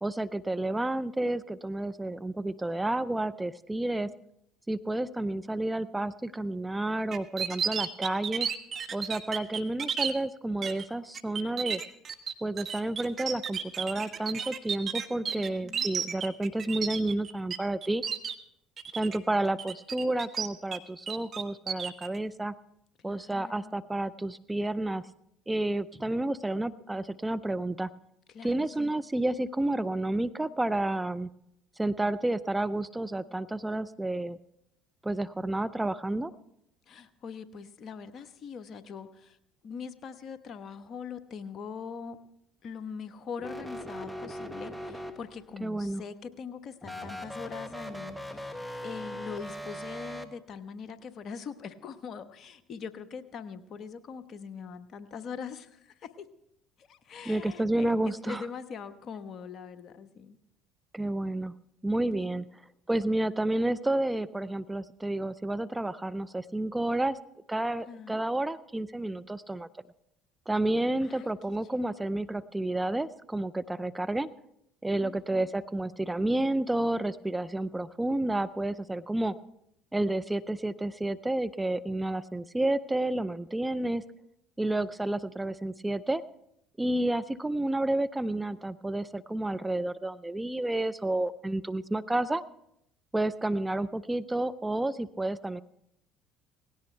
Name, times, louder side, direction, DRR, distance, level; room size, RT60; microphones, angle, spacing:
voice 1, 0.0-4.1 4.7-8.5 8.9-11.8 12.4-18.0 19.0-22.5 23.0-25.1 25.5-27.9 28.4-31.3 31.8-34.4 35.0-36.3 45.6-46.0 57.3-58.5 60.9-61.5 61.8-62.4 62.9-67.2 67.5-69.7 70.5-74.3 74.8-79.4 79.9-84.0 84.6-86.2 86.8-92.4 93.1-95.6, right 1 dB, 10° right, 14 dB, 0.5 m, -30 dB
sound 1, 7.1-10.1 10.6-10.8 11.1-17.6 17.8-18.3 18.8-19.2 19.6-20.8 21.1-22.1, right 7 dB, 45° right, 1.3 m, -32 dB
voice 2, 15.1-16.0 23.0-23.8 28.3-28.9 36.9-39.4 39.6-42.2 42.6-56.3 56.8-60.4 62.1-62.5 67.9-68.2 71.0-71.3 71.7-71.9 75.0-75.5, left 6 dB, 50° left, 11 dB, 1.1 m, -42 dB
sound 2, 43.4-45.6 46.8-50.2, equal, 5° left, 1.4 m, -40 dB
18.0 x 16.5 x 3.3 m, 0.77 s
hypercardioid pair, 65°, 0 cm